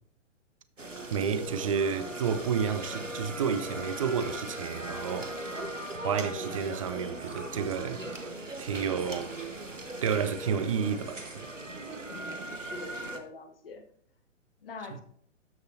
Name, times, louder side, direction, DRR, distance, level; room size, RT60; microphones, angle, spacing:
sound 1, 0.8-13.2, right 1 dB, 85° right, 1.4 m, -39 dB
voice 1, 1.1-5.3 6.0-8.3 8.6-9.3 10.0-11.5, right 7 dB, 25° right, 0.6 m, -30 dB
voice 2, 12.1-13.8 14.6-15.0, left 4 dB, 50° left, 1.5 m, -45 dB
13.0 x 6.6 x 2.7 m
figure-of-eight pair, 125°, 37 cm